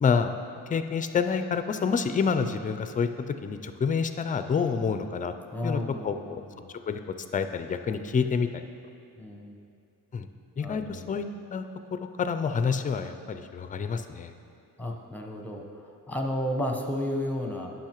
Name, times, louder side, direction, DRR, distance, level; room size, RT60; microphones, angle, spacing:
voice 1, 0.0-0.3 0.7-5.3 5.6-6.4 6.9-7.0 7.3-8.6 10.1-10.3 10.6-11.2 11.5-11.6 11.9-14.3, left 6 dB, 25° left, 8 dB, 0.3 m, -28 dB
voice 2, 5.5-6.6 9.2-9.6 10.6-11.1 14.8-17.7, left 1 dB, 5° left, 1 dB, 0.8 m, -33 dB
10.5 x 5.7 x 3.0 m, 2.6 s
cardioid pair, 90°, 36 cm